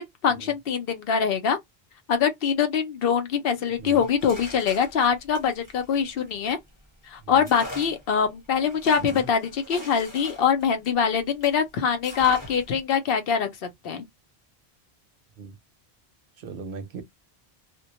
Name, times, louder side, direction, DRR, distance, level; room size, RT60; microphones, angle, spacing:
voice 1, 0.0-1.6 2.1-6.6 7.1-13.5 13.8-14.0, left 7 dB, 70° left, 0.8 m, -24 dB
sound 1, 3.7-6.8 7.4-11.6 12.0-12.8, left 1 dB, 20° left, 1.0 m, -43 dB
voice 2, 16.4-17.0, right 5 dB, 65° right, 0.7 m, -38 dB
2.2 x 2.1 x 2.7 m
omnidirectional pair, 1.0 m